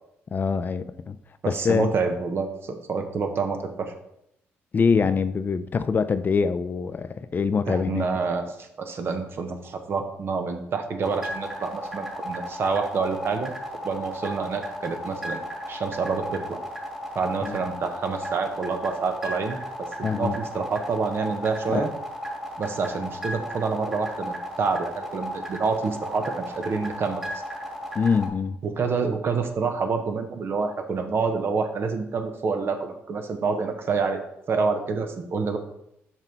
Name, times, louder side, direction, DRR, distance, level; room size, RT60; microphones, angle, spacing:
voice 1, 0.3-1.2 1.4-1.9 4.7-8.1 17.4-17.6 20.0-20.3 21.7-21.9 27.9-28.6, left 5 dB, 40° left, 12 dB, 0.4 m, -24 dB
voice 2, 1.4-3.9 7.7-13.5 13.8-15.4 15.7-16.6 17.1-21.9 22.6-27.4 28.6-34.2 34.5-35.6, right 4 dB, 55° right, 6 dB, 1.1 m, -27 dB
sound 1, 11.0-28.3, equal, 10° right, 1.8 m, -34 dB
6.0 x 5.4 x 4.6 m, 0.79 s
cardioid pair, 85°, 5 cm